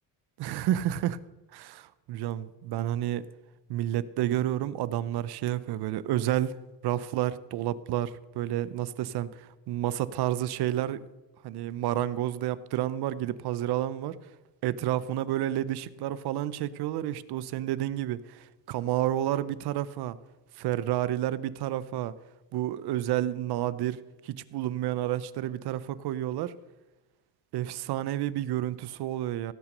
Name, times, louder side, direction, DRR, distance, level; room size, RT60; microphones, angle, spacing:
voice 1, 0.4-1.2 1.5-3.3 3.7-6.6 6.8-11.0 11.4-14.2 14.6-20.2 20.6-22.1 22.5-26.5 27.5-29.5, right 13 dB, 60° right, 0.5 m, -30 dB
16.0 x 5.9 x 6.5 m
cardioid pair, 155°, 45 cm